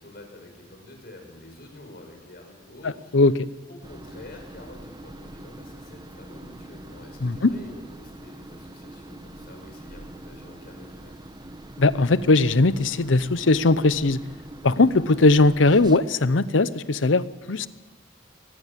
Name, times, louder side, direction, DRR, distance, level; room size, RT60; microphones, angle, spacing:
voice 1, 0.0-3.2 3.7-11.2, left 2 dB, 55° left, 4 dB, 5.7 m, -47 dB
voice 2, 3.1-3.5 7.2-7.5 11.8-14.2 14.6-17.7, left 3 dB, 85° left, 16 dB, 0.8 m, -19 dB
sound 1, 3.8-16.0, right 1 dB, 25° right, 1.0 m, -43 dB
23.0 x 19.0 x 7.5 m, 1.3 s
head